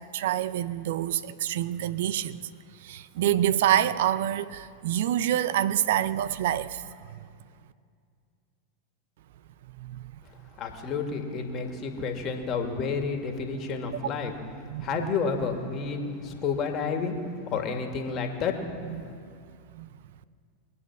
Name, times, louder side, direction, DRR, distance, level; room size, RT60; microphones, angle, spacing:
voice 1, 0.0-7.3 9.8-10.2 14.7-15.1 18.8-19.1 19.7-19.9, right 11 dB, 65° right, 0.5 m, -27 dB
voice 2, 10.6-14.3 14.8-17.2 17.5-18.5, left 5 dB, 40° left, 2.0 m, -30 dB
23.0 x 8.5 x 6.1 m
hypercardioid pair, 95°, 0 cm